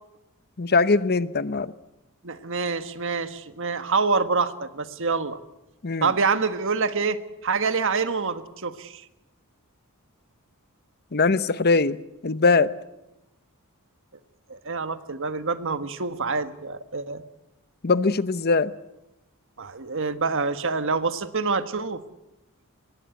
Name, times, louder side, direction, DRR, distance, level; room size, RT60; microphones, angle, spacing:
voice 1, 0.6-1.7 5.8-6.1 11.1-12.7 17.8-18.7, left 4 dB, 45° left, 15 dB, 0.8 m, -21 dB
voice 2, 2.2-5.4 6.0-9.0 14.5-17.2 19.6-22.0, right 4 dB, 60° right, 11 dB, 1.5 m, -26 dB
24.5 x 20.5 x 8.3 m, 0.89 s
head